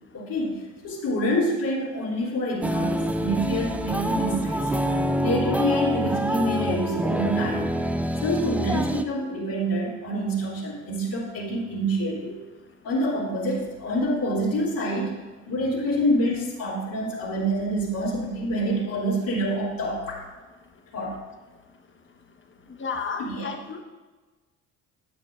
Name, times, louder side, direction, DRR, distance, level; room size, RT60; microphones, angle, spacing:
voice 1, 0.1-4.7 5.2-7.7 8.2-12.4 12.8-15.1 15.5-20.2 20.9-21.2 23.2-23.5, equal, 60° left, -7 dB, 2.9 m, -27 dB
sound 1, 2.6-9.0, equal, 5° right, 0.5 m, -26 dB
voice 2, 22.8-23.8, left 5 dB, 30° left, 4 dB, 1.2 m, -32 dB
13.0 x 8.3 x 2.5 m, 1.3 s
hypercardioid pair, 55°, 39 cm